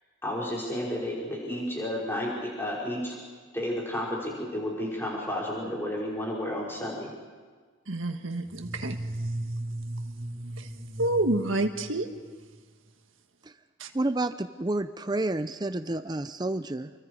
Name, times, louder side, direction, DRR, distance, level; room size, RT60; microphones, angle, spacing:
voice 1, 0.2-3.2 3.5-7.1, left 1 dB, 10° left, -5 dB, 5.4 m, -32 dB
voice 2, 7.9-9.0 10.6-10.7 11.0-12.1 13.8-13.9, right 2 dB, 80° right, 5 dB, 1.7 m, -28 dB
sound 1, 8.4-12.6, right 1 dB, 35° right, 6.5 m, -36 dB
voice 3, 13.9-16.9, right 2 dB, 20° right, 11 dB, 0.6 m, -29 dB
28.5 x 23.5 x 4.9 m, 1.5 s
head